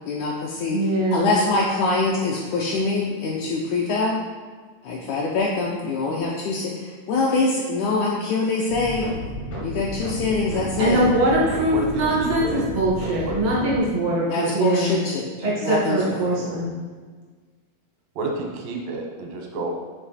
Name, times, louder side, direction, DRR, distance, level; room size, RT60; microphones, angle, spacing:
voice 1, 0.1-0.8 1.1-4.2 4.8-9.1 9.6-11.0 14.3-15.3 15.6-16.5, left 3 dB, 80° left, -2 dB, 1.8 m, -24 dB
voice 2, 0.7-1.3 10.8-15.0 15.4-16.8, right 1 dB, 55° right, -6 dB, 0.4 m, -22 dB
sound 1, 8.7-13.8, equal, 60° left, 0.8 m, -32 dB
voice 3, 11.7-12.6 13.3-13.4 16.0-16.2 18.2-19.7, right 2 dB, 90° right, 1 dB, 2.6 m, -30 dB
6.9 x 3.3 x 4.2 m, 1.5 s
omnidirectional pair, 3.9 m